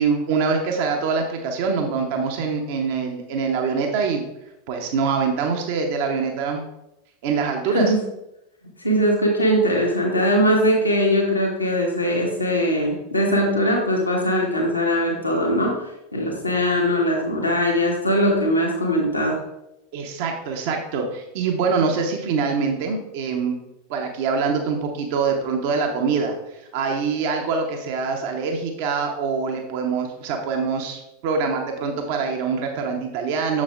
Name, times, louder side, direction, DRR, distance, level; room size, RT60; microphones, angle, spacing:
voice 1, 0.0-4.2 4.7-6.6 7.2-7.9 19.9-23.6 23.9-33.6, right 5 dB, 50° right, 3 dB, 0.9 m, -24 dB
voice 2, 7.7-8.0 8.8-19.4, equal, 85° left, -1 dB, 1.5 m, -21 dB
7.4 x 6.9 x 2.5 m, 0.87 s
figure-of-eight pair, 85°, 0 cm